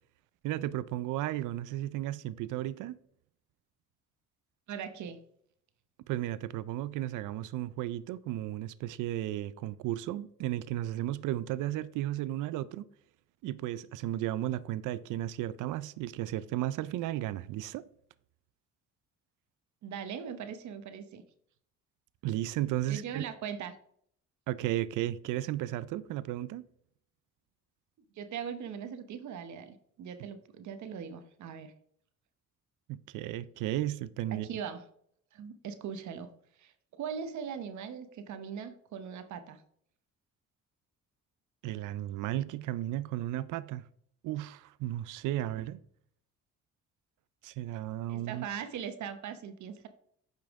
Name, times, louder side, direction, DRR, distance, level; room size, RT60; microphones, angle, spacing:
voice 1, 0.4-3.0 6.1-12.8 13.4-17.8 22.2-23.3 24.5-26.6 32.9-34.5 41.6-43.8 44.2-45.8 47.4-48.5, right 14 dB, 90° right, 0.5 m, -34 dB
voice 2, 4.7-5.2 19.8-21.2 22.9-23.7 28.2-31.7 34.3-34.8 35.3-36.3 36.6-39.6 48.1-49.9, right 7 dB, 70° right, 0.9 m, -40 dB
8.8 x 5.6 x 3.5 m
cardioid pair, 90°, 30 cm